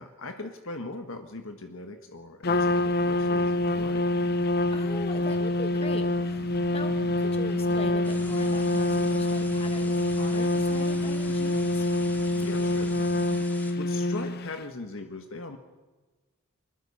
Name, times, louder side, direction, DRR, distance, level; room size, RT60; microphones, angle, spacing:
voice 1, 0.0-4.0 12.4-13.3 13.8-15.6, left 2 dB, 65° left, 5 dB, 1.6 m, -40 dB
Trumpet, 2.4-14.6, left 2 dB, 50° left, 0.7 m, -26 dB
sound 1, 2.5-13.5, right 3 dB, 75° right, 0.7 m, -43 dB
voice 2, 4.7-6.5 6.7-11.9, left 2 dB, 30° left, 6 dB, 1.3 m, -41 dB
sound 2, 8.0-13.7, left 1 dB, 10° left, 2.2 m, -46 dB
24.0 x 21.5 x 5.6 m, 1.3 s
head